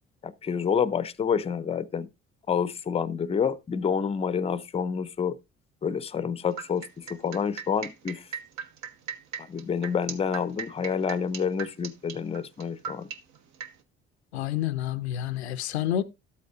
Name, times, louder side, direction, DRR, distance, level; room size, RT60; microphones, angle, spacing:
voice 1, 0.2-2.1 2.5-5.4 5.8-8.3 9.4-13.1, left 7 dB, 20° left, 0.5 m, -28 dB
sound 1, 6.6-13.7, right 7 dB, 60° right, 1.0 m, -37 dB
voice 2, 14.3-16.0, left 11 dB, 85° left, 0.5 m, -29 dB
12.5 x 8.3 x 2.5 m
figure-of-eight pair, 50°, 32 cm